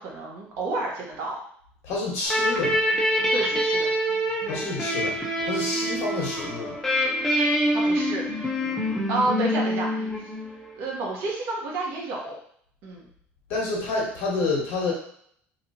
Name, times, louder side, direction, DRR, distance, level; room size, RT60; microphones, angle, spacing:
voice 1, 0.0-1.4 3.3-3.9 5.8-5.9 7.7-8.2 8.6-10.3 10.8-12.4 12.8-13.1, right 2 dB, 55° right, -2 dB, 1.0 m, -30 dB
voice 2, 1.8-2.8 4.5-5.1 5.4-6.8 13.5-14.9, left 3 dB, 60° left, -2 dB, 1.2 m, -28 dB
sound 1, 2.3-10.7, equal, 10° left, 0.5 m, -25 dB
3.2 x 2.9 x 2.7 m, 0.63 s
cardioid pair, 165°, 5 cm